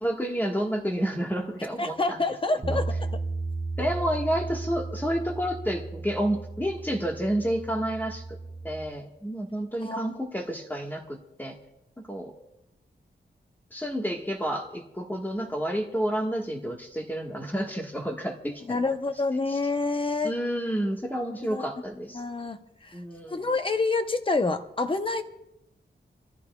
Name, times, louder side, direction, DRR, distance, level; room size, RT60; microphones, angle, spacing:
voice 1, 0.0-2.2 2.7-2.8 3.8-8.2 8.6-11.6 12.1-12.3 13.7-18.8 19.5-19.6 20.2-22.2 22.9-23.4, equal, 10° left, 1 dB, 1.4 m, -30 dB
voice 2, 1.8-3.2 9.8-10.0 18.7-20.3 21.5-21.6 22.1-22.6 22.9-23.0 23.3-25.2, left 3 dB, 30° left, 8 dB, 0.8 m, -27 dB
Bass guitar, 2.6-8.9, right 3 dB, 30° right, 1.1 m, -34 dB
26.5 x 14.5 x 2.3 m, 0.89 s
wide cardioid pair, 135°, 19 cm